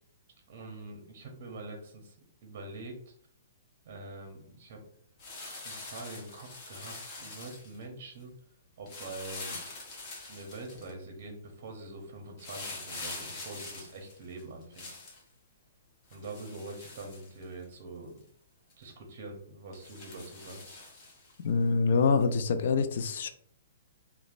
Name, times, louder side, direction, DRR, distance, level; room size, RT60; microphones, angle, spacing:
voice 1, 0.5-2.1 2.4-3.1 3.8-4.8 5.6-8.3 8.8-9.6 10.3-14.9 16.1-18.2 18.8-20.8, right 2 dB, 50° right, 2 dB, 0.7 m, -44 dB
sound 1, 5.2-7.8 8.9-10.9 12.4-15.2 16.1-17.7 18.2-18.3 18.7-18.8 19.7-21.3 22.2-22.3, left 3 dB, 30° left, 0.7 m, -44 dB
voice 2, 21.4-23.3, left 4 dB, 60° left, 9 dB, 0.3 m, -25 dB
3.0 x 2.1 x 2.5 m, 0.63 s
hypercardioid pair, 155°, 0 cm